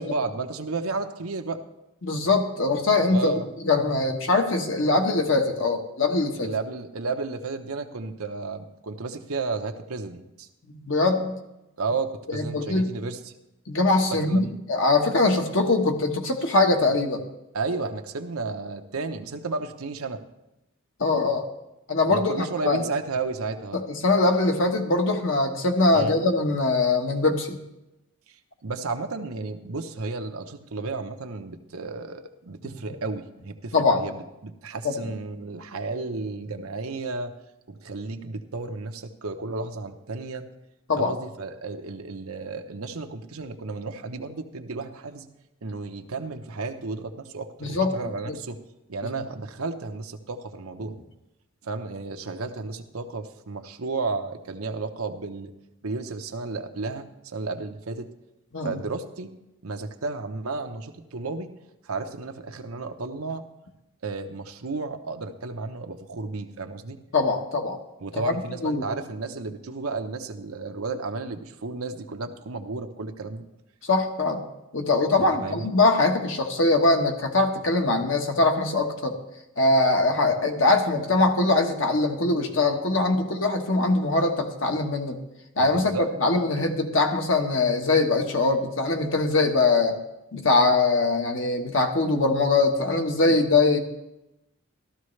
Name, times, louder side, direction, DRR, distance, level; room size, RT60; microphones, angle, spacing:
voice 1, 0.0-1.6 3.1-3.5 6.4-10.5 11.8-13.3 14.1-14.5 17.5-20.2 22.1-23.8 25.9-26.2 28.6-37.3 37.7-40.5 41.0-45.3 45.6-48.6 48.9-51.0 51.6-55.5 55.8-58.1 58.6-59.3 59.6-61.5 61.8-63.4 64.0-67.0 68.0-73.4 75.2-75.7 85.6-86.1, right 3 dB, 90° right, 6 dB, 0.9 m, -33 dB
voice 2, 2.0-3.3 3.6-6.5 10.7-11.4 12.3-13.0 13.7-17.2 21.0-21.4 21.9-22.8 23.7-27.6 33.7-34.0 34.8-35.1 40.9-41.1 47.6-48.0 48.3-48.4 58.5-58.8 67.1-67.8 68.1-68.3 68.6-68.8 73.8-74.4 74.7-79.2 79.6-85.2 85.6-89.9 90.3-93.8, left 3 dB, 60° left, 3 dB, 1.3 m, -22 dB
14.0 x 13.0 x 3.3 m, 0.94 s
head